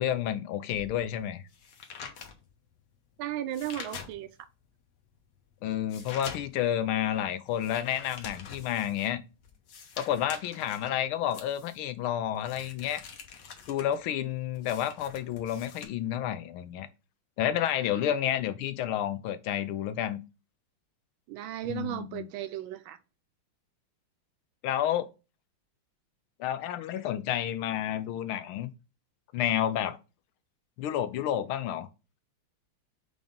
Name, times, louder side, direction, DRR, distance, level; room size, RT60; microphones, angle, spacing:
voice 1, 0.0-1.4 5.6-9.2 10.0-13.0 13.7-16.9 17.4-20.2 21.7-22.3 24.6-25.1 26.4-28.7 29.3-30.0 30.8-31.9, left 11 dB, 80° left, 1.5 m, -30 dB
sound 1, 0.7-4.5 5.0-15.8, left 6 dB, 60° left, 1.5 m, -46 dB
voice 2, 3.2-4.3 17.9-18.1 21.3-23.0, right 12 dB, 75° right, 1.3 m, -35 dB
4.8 x 3.9 x 5.1 m
omnidirectional pair, 2.3 m